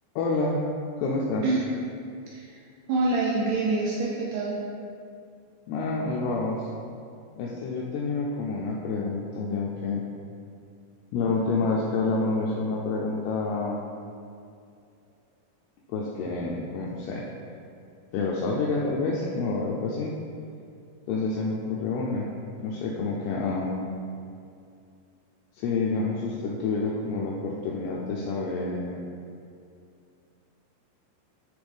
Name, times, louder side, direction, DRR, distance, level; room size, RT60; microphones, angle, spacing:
voice 1, 0.2-0.6 1.0-1.5 5.7-6.7 7.4-10.0 11.1-13.8 15.9-17.2 18.1-20.1 21.1-22.3 22.6-23.9 25.6-29.0, left 3 dB, 90° left, -3 dB, 2.3 m, -28 dB
voice 2, 2.3-2.6 2.9-4.6, right 3 dB, 85° right, -4 dB, 2.3 m, -26 dB
9.7 x 3.4 x 3.4 m, 2.4 s
omnidirectional pair, 5.2 m